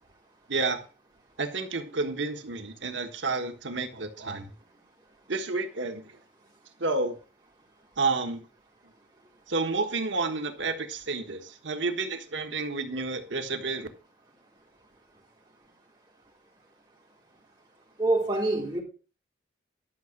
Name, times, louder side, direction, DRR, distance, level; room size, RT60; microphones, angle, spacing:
voice 1, 0.5-0.8 1.4-4.5 5.3-6.1 6.8-7.2 8.0-8.4 9.5-13.9, right 3 dB, 85° right, 1.5 m, -30 dB
voice 2, 18.0-18.8, right 2 dB, 25° right, 4.0 m, -25 dB
11.5 x 6.1 x 6.0 m
head